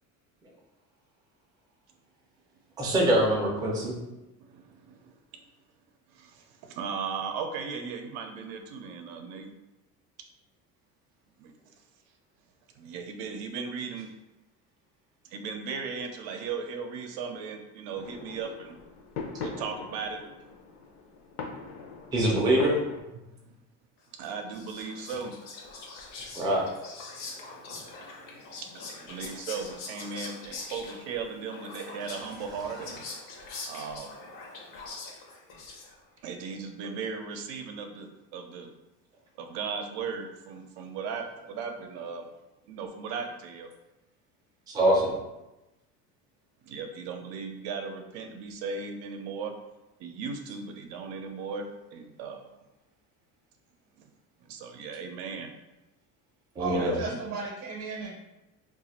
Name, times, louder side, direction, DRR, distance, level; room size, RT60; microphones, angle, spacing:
voice 1, 2.8-3.9 22.1-22.7 26.4-26.7 44.7-45.1 56.6-57.0, right 1 dB, 10° right, -3 dB, 0.4 m, -24 dB
voice 2, 4.4-5.1 6.1-9.5 11.4-11.5 12.8-14.1 15.2-18.8 19.4-20.2 23.1-23.4 24.2-25.3 27.9-33.0 33.7-34.2 36.2-38.7 39.4-42.3 42.7-43.7 46.6-49.5 50.0-52.6 54.0-54.1 54.4-55.5 56.7-57.2, right 5 dB, 85° right, 5 dB, 0.6 m, -37 dB
sound 1, 18.0-23.0, left 4 dB, 45° left, 0.5 m, -41 dB
Whispering, 24.2-36.2, left 3 dB, 75° left, 0.9 m, -43 dB
voice 3, 56.6-58.2, right 4 dB, 50° right, -2 dB, 0.7 m, -35 dB
2.4 x 2.4 x 4.1 m, 0.98 s
cardioid pair, 175°, 34 cm